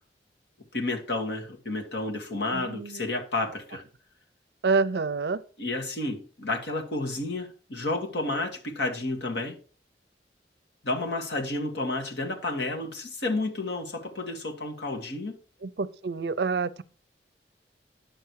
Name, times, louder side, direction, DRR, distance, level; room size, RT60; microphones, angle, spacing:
voice 1, 0.7-3.8 5.6-9.6 10.8-15.4, left 2 dB, 80° left, 2.0 m, -31 dB
voice 2, 2.5-3.0 4.6-5.4 15.6-16.8, right 4 dB, 65° right, 0.5 m, -27 dB
10.0 x 6.9 x 4.7 m
head